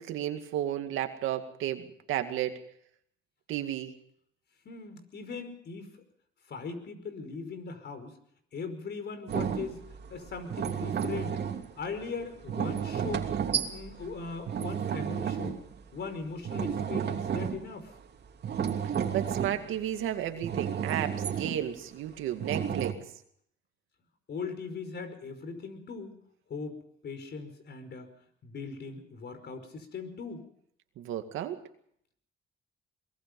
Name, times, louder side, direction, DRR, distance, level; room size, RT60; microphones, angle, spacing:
voice 1, 0.0-2.6 3.5-3.9 19.1-23.0 31.0-31.6, right 11 dB, 90° right, 7 dB, 2.2 m, -33 dB
voice 2, 4.7-6.0 6.5-8.1 8.5-9.8 10.1-11.4 11.8-13.3 13.7-15.6 15.9-17.9 24.3-26.2 26.5-28.1 28.4-30.4, left 4 dB, 60° left, 9 dB, 5.2 m, -39 dB
sound 1, 9.3-16.1 16.3-17.9 18.2-20.0 20.4-21.7 22.4-22.9, right 8 dB, 55° right, 2.8 m, -32 dB
23.0 x 21.5 x 5.4 m, 0.68 s
cardioid pair, 90°, 20 cm